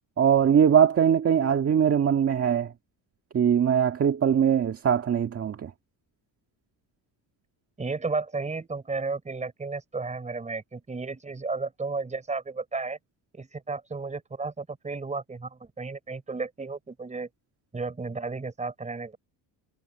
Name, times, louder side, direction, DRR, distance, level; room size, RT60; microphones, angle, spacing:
voice 1, 0.2-2.7 3.3-5.7, right 8 dB, 35° right, 1.8 m, -21 dB
voice 2, 7.8-13.0 13.3-17.3 17.7-19.2, right 4 dB, 15° right, 4.7 m, -33 dB
cardioid pair, 160°, 41 cm